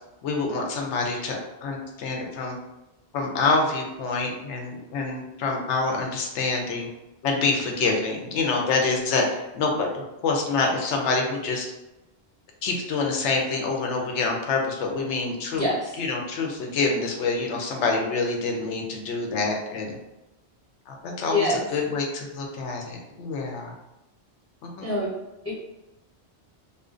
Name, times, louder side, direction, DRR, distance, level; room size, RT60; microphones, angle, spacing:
voice 1, 0.2-2.6 3.1-6.9 7.2-11.7 12.6-15.7 16.0-20.0 20.9-23.7 24.6-25.0, left 3 dB, 90° left, 1 dB, 0.9 m, -26 dB
voice 2, 15.5-16.0 21.3-21.6 24.8-25.1 25.4-25.5, left 1 dB, 20° left, -7 dB, 0.5 m, -25 dB
2.4 x 2.1 x 2.4 m, 0.98 s
omnidirectional pair, 1.1 m